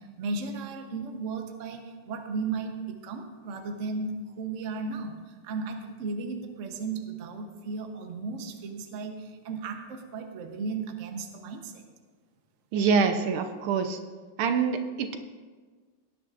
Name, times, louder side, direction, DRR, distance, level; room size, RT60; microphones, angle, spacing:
voice 1, 0.0-11.8, right 4 dB, 50° right, 4 dB, 1.0 m, -35 dB
voice 2, 12.7-14.0 14.4-15.2, right 5 dB, 80° right, 6 dB, 1.6 m, -25 dB
18.0 x 10.0 x 2.5 m, 1.4 s
omnidirectional pair, 2.4 m